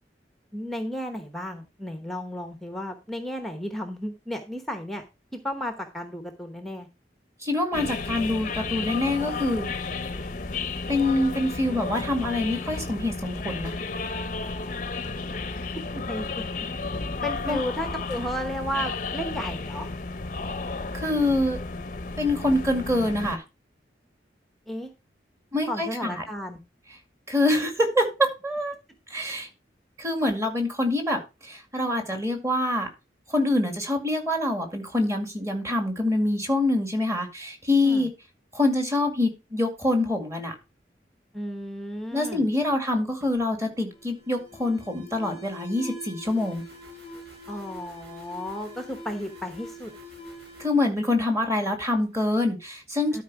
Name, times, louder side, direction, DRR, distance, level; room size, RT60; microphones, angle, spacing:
voice 1, 0.5-5.0 5.3-6.9 15.9-16.3 17.2-19.9 24.7-24.9 25.7-26.6 37.8-38.1 41.3-42.4 47.5-49.9 53.1-53.2, equal, ahead, 6 dB, 0.9 m, -33 dB
voice 2, 7.4-9.7 10.9-13.7 17.4-17.6 20.9-21.6 22.2-23.4 25.5-26.2 27.3-28.8 29.1-29.5 30.0-32.9 33.3-38.1 38.5-40.5 42.1-46.6 50.6-53.2, left 1 dB, 15° right, 4 dB, 2.1 m, -25 dB
sound 1, 7.7-23.4, left 3 dB, 45° left, 0.7 m, -33 dB
Alarm, 43.2-51.8, left 1 dB, 65° right, 4.9 m, -44 dB
12.5 x 4.6 x 4.7 m, 0.28 s
head